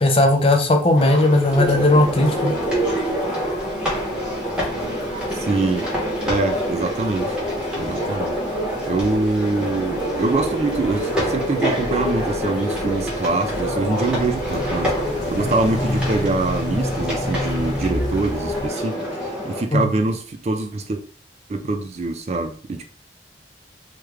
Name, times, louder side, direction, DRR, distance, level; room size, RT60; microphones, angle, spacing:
voice 1, 0.0-2.5 19.7-19.9, left 1 dB, 30° left, 4 dB, 0.5 m, -17 dB
sound 1, 1.0-19.6, equal, 5° right, 1.0 m, -26 dB
sound 2, 1.4-18.7, left 1 dB, 90° left, 0.8 m, -33 dB
voice 2, 5.3-5.9 6.2-7.3 7.8-8.4 8.9-21.0 21.5-22.9, right 3 dB, 35° right, 5 dB, 0.3 m, -24 dB
3.2 x 2.3 x 3.3 m, 0.42 s
head